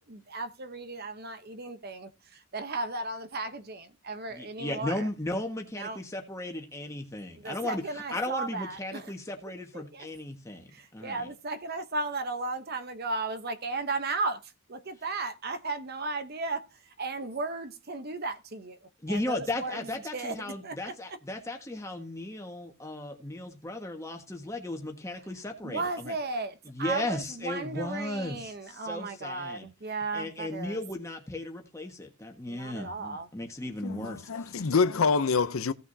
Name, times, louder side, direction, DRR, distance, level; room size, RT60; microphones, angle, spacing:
voice 1, 0.0-5.1 5.8-6.0 7.3-9.1 9.7-10.1 10.7-16.6 17.0-18.8 19.1-21.2 25.6-30.8 32.5-33.3, right 3 dB, 50° right, 0.9 m, -35 dB
voice 2, 4.3-11.3 19.0-26.1 26.6-29.7 30.1-34.7, left 1 dB, 15° left, 1.5 m, -36 dB
voice 3, 33.8-35.7, left 5 dB, 80° left, 0.6 m, -26 dB
16.5 x 6.1 x 2.7 m
head